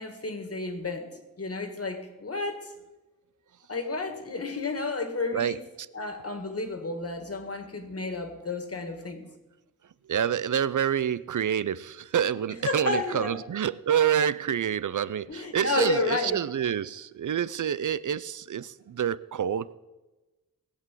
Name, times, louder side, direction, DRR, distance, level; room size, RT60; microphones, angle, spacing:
voice 1, 0.0-2.7 3.7-5.6 5.9-9.3 12.5-13.4 15.3-16.4, left 3 dB, 40° left, 2.0 m, -31 dB
voice 2, 10.1-19.7, right 9 dB, 60° right, 0.5 m, -27 dB
18.5 x 8.3 x 7.6 m
wide cardioid pair, 125°, 35 cm